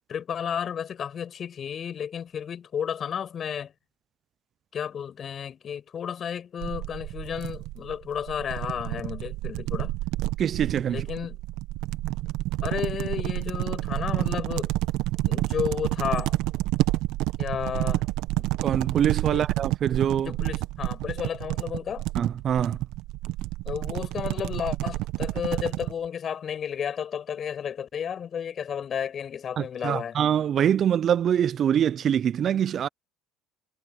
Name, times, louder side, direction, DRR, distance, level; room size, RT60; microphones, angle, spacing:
voice 1, 0.1-3.7 4.7-9.9 10.9-11.4 12.6-14.7 15.3-16.4 17.4-18.0 18.4-18.5 19.3-19.4 20.2-22.1 23.7-30.1, left 8 dB, 45° left, 6.7 m, -32 dB
sound 1, 6.6-25.9, right 18 dB, 70° right, 1.4 m, -29 dB
voice 2, 10.4-11.1 18.6-20.3 22.1-22.8 29.6-32.9, right 9 dB, 45° right, 0.5 m, -24 dB
hypercardioid pair, 75°, 0 cm